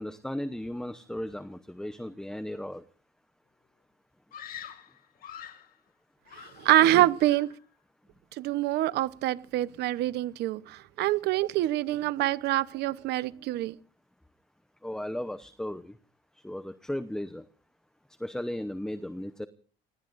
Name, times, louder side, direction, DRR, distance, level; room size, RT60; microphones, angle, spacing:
voice 1, 0.0-2.8 14.8-16.0 16.4-17.4 18.2-19.5, left 1 dB, 5° left, 0.9 m, -35 dB
Screaming, 4.3-5.7 6.3-6.9 7.2-7.6, left 9 dB, 60° left, 2.4 m, -45 dB
voice 2, 6.6-7.5 8.4-13.7, right 15 dB, 80° right, 1.0 m, -25 dB
26.0 x 20.0 x 2.6 m
cardioid pair, 110°, 17 cm